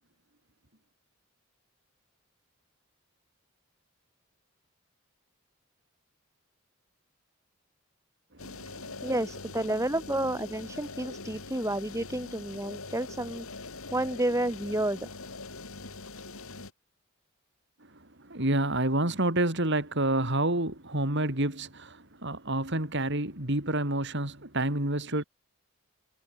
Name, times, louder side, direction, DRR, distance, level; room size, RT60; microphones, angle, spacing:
sound 1, 8.4-16.7, left 3 dB, 75° left, 3.8 m, -43 dB
voice 1, 9.0-13.5 13.9-15.1, right 1 dB, 15° right, 2.3 m, -30 dB
voice 2, 18.3-25.2, right 1 dB, 55° right, 4.3 m, -28 dB
head